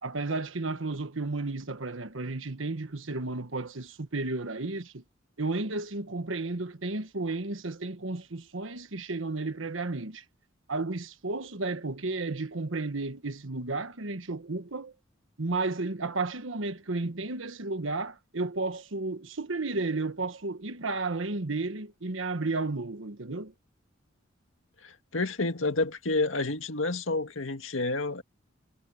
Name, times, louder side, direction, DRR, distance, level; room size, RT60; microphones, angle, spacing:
voice 1, 0.0-5.0 5.4-10.2 10.7-14.9 15.4-23.5, right 3 dB, 75° right, 1.4 m, -33 dB
voice 2, 24.8-28.2, left 2 dB, 85° left, 2.0 m, -29 dB
head